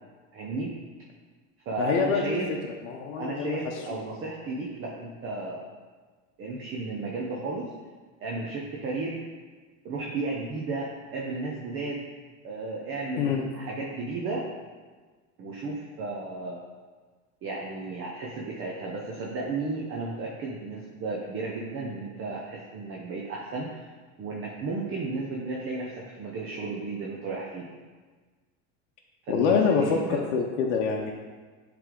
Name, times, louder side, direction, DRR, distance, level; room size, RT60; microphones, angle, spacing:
voice 1, 0.3-0.7 1.7-2.5 3.2-5.7 6.4-7.7 8.2-9.2 9.8-12.0 12.4-14.5 15.4-16.6 17.4-23.9 24.2-27.8 29.3-30.2, right 3 dB, 35° right, -2 dB, 0.8 m, -33 dB
voice 2, 1.8-2.4 2.8-3.6 13.2-13.5 29.3-31.1, left 6 dB, 85° left, 0 dB, 0.7 m, -25 dB
7.7 x 3.4 x 3.8 m, 1.4 s
supercardioid pair, 125°, 35 cm